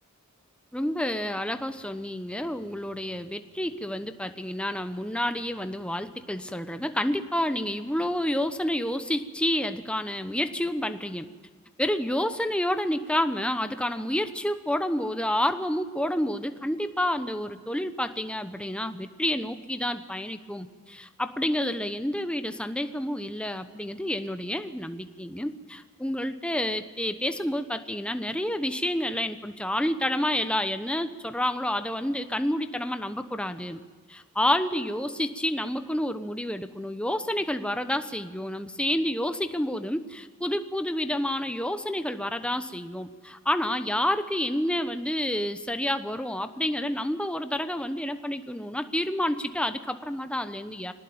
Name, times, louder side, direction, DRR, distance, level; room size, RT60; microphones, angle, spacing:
voice 1, 0.7-11.3 11.8-33.8 34.1-50.9, left 1 dB, 5° left, 9 dB, 1.0 m, -29 dB
22.0 x 19.0 x 8.8 m, 1.4 s
head